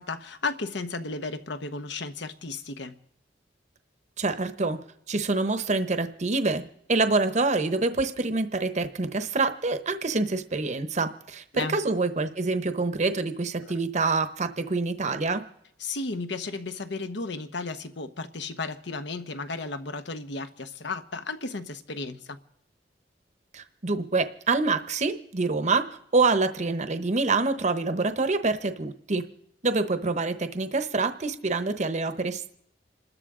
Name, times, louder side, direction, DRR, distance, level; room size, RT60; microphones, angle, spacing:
voice 1, 0.0-3.0 11.5-11.8 13.6-13.7 15.8-22.4, left 3 dB, 75° left, 1.0 m, -34 dB
voice 2, 4.2-4.8 5.1-6.6 6.9-15.4 23.5-25.8 26.1-29.2 29.6-32.5, right 3 dB, 40° right, 0.9 m, -26 dB
28.0 x 13.5 x 3.7 m
head